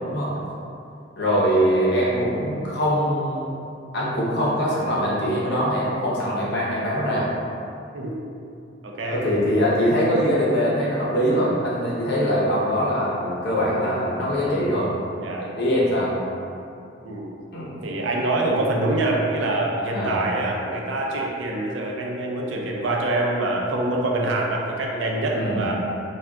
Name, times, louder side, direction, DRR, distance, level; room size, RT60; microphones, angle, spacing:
voice 1, 1.2-3.6 3.9-7.3 9.0-14.9 15.4-16.1 17.5-17.7 19.9-20.2 25.3-25.6, equal, 60° left, -6 dB, 0.7 m, -22 dB
voice 2, 8.8-9.2 15.2-15.5 17.0-17.3 17.8-25.7, right 2 dB, 80° right, -1 dB, 0.4 m, -25 dB
3.5 x 2.3 x 2.3 m, 2.6 s
head